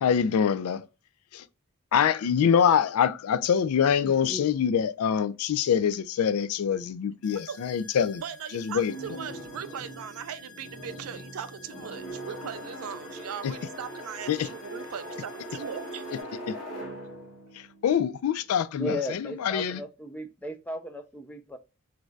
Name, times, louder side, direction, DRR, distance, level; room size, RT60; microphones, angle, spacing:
voice 1, 0.0-0.8 1.3-1.4 1.9-8.2 8.5-8.9 13.4-13.5 14.3-14.5 17.8-19.8, left 8 dB, 85° left, 0.3 m, -25 dB
voice 2, 4.0-4.5 18.8-21.6, equal, 5° left, 0.4 m, -36 dB
sound 1, 7.2-16.2, left 4 dB, 65° left, 1.0 m, -52 dB
voice 3, 8.2-16.0, right 8 dB, 80° right, 0.4 m, -39 dB
sound 2, 8.8-18.8, right 1 dB, 35° left, 1.7 m, -41 dB
3.2 x 2.6 x 2.2 m
head